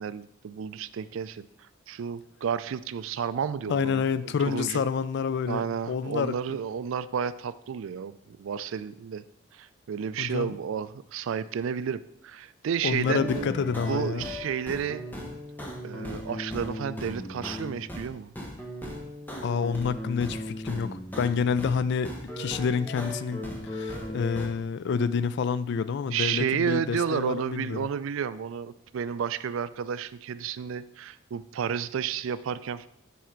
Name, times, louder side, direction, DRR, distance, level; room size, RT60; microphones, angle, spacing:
voice 1, 0.0-4.8 5.5-9.2 9.5-13.5 13.9-15.1 15.8-18.3 26.1-32.9, right 7 dB, 70° right, 15 dB, 0.3 m, -31 dB
voice 2, 3.7-6.4 10.2-10.5 12.8-14.3 19.4-27.9, left 6 dB, 55° left, 15 dB, 0.3 m, -28 dB
sound 1, 13.0-18.1 18.3-21.8 22.0-24.5, left 1 dB, 10° left, 0.9 m, -37 dB
7.1 x 4.5 x 4.5 m, 0.72 s
head